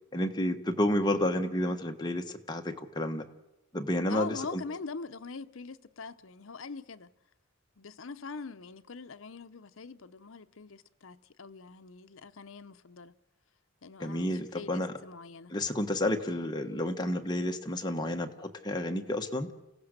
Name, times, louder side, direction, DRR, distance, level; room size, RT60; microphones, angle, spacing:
voice 1, 0.1-3.2 3.7-4.6 14.0-14.9 15.5-19.5, left 1 dB, 20° left, 1.3 m, -30 dB
voice 2, 4.1-7.1 7.8-13.1 13.8-15.6, left 4 dB, 65° left, 0.7 m, -43 dB
29.0 x 16.5 x 6.6 m
head